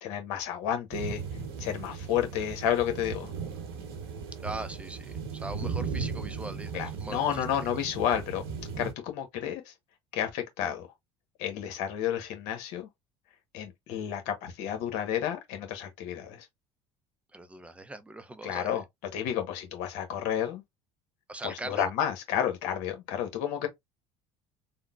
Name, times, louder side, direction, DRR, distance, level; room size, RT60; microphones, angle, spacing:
voice 1, 0.0-1.2 1.6-3.3 6.7-8.4 8.8-9.7 10.1-10.9 11.4-12.9 13.5-16.5 18.4-18.8 19.1-20.6 21.4-23.7, left 9 dB, 70° left, 1.1 m, -31 dB
sound 1, 0.9-8.9, right 5 dB, 90° right, 1.1 m, -37 dB
voice 2, 4.4-7.4 17.3-18.8 21.3-21.9, right 2 dB, 10° right, 0.5 m, -40 dB
3.7 x 2.2 x 2.4 m
supercardioid pair, 80°, 13 cm